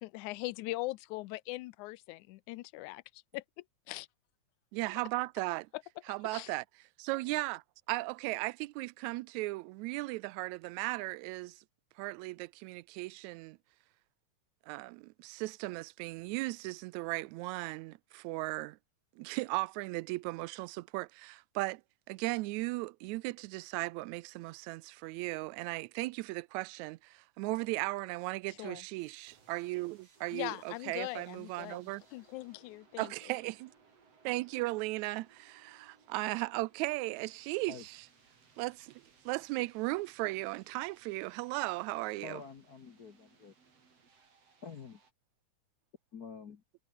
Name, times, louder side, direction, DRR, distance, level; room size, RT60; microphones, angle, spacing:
voice 1, 0.0-4.1 6.1-6.6 28.5-28.9 30.3-31.8 32.1-33.4, left 20 dB, 80° left, 2.0 m, -41 dB
voice 2, 4.7-5.7 6.1-6.6 7.0-11.6 12.0-13.6 14.7-18.8 19.2-21.8 22.1-32.0 33.0-33.7 34.2-38.0 38.6-42.4, right 21 dB, 80° right, 1.8 m, -37 dB
sound 1, 29.0-45.1, right 5 dB, 55° right, 5.0 m, -65 dB
voice 3, 42.2-43.5 44.6-45.0 46.1-46.6, left 5 dB, 50° left, 1.1 m, -47 dB
omnidirectional pair, 3.5 m